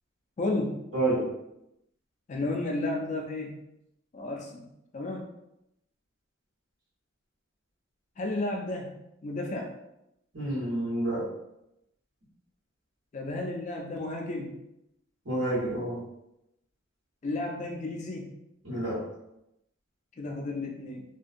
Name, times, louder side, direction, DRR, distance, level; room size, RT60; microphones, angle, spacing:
voice 1, 0.4-0.8 2.3-3.6 4.1-4.6 4.9-5.3 8.2-9.7 13.1-14.6 17.2-18.4 20.2-21.0, left 2 dB, 35° left, 1 dB, 0.3 m, -33 dB
voice 2, 0.9-1.2 10.3-11.2 15.2-16.0 18.6-19.0, right 1 dB, 65° right, -8 dB, 1.3 m, -28 dB
2.5 x 2.2 x 2.5 m, 0.85 s
head